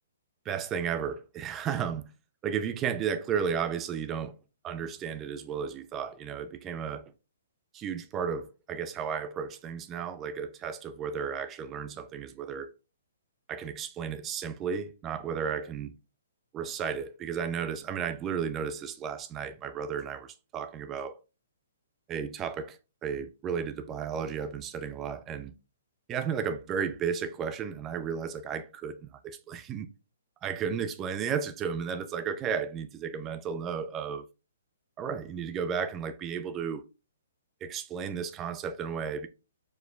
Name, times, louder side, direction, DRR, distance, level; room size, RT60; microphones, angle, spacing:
voice 1, 0.5-2.1 2.4-4.4 4.6-7.1 7.7-12.7 13.5-15.9 16.5-21.2 22.1-25.5 26.1-29.9 30.4-34.3 35.0-36.8 37.6-39.3, right 7 dB, 20° right, 0.4 m, -33 dB
4.5 x 4.3 x 2.2 m
hypercardioid pair, 140°, 0 cm